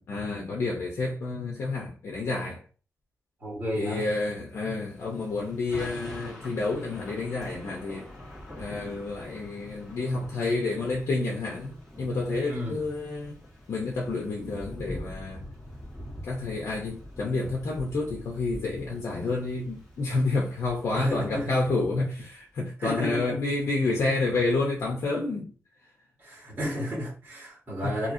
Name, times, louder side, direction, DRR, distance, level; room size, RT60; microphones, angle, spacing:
voice 1, 0.1-2.6 3.7-8.1 8.6-13.4 13.7-15.4 16.2-25.5 27.8-28.0, left 3 dB, 70° left, 0.7 m, -29 dB
voice 2, 3.4-4.1 12.5-12.8 20.9-21.5 22.8-23.4 26.2-28.1, equal, 35° right, 1.5 m, -32 dB
Thunder / Rain, 4.8-22.3, left 1 dB, 5° left, 1.7 m, -45 dB
2.9 x 2.8 x 2.6 m
wide cardioid pair, 115°, 5 cm